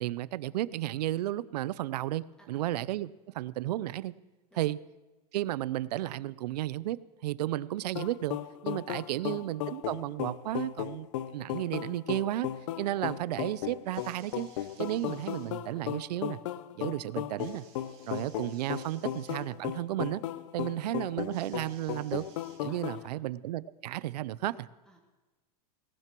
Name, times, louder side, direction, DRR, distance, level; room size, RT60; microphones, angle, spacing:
voice 1, 0.0-4.1 4.6-4.8 5.3-8.4 8.6-11.1 11.3-12.5 12.8-14.5 14.8-16.4 16.8-17.6 18.0-20.2 20.5-22.3 22.6-24.7, right 14 dB, 90° right, 19 dB, 0.6 m, -33 dB
sound 1, 8.0-23.1, left 12 dB, 50° left, 0.6 m, -36 dB
sound 2, 13.8-15.5 17.4-19.4 21.3-23.0 24.0-24.1, right 6 dB, 30° right, 4.9 m, -59 dB
voice 2, 22.7-23.2 24.9-25.0, equal, 5° left, 2 dB, 1.9 m, -60 dB
18.5 x 12.0 x 4.5 m, 1.2 s
supercardioid pair, 175°, 20 cm